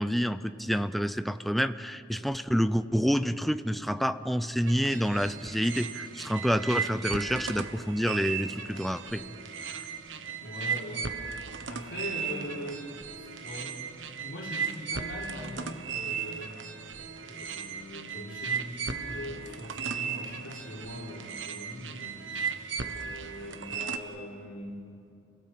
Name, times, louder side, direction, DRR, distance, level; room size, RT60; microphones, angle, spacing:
voice 1, 0.0-9.2 9.7-9.8, equal, ahead, 11 dB, 0.6 m, -28 dB
sound 1, 4.7-24.0, right 6 dB, 85° right, 1.2 m, -36 dB
voice 2, 10.4-11.2 11.7-12.9 13.2-13.8 14.2-16.5 17.2-24.8, left 1 dB, 75° left, -2 dB, 4.1 m, -41 dB
29.0 x 17.5 x 7.8 m, 2.5 s
head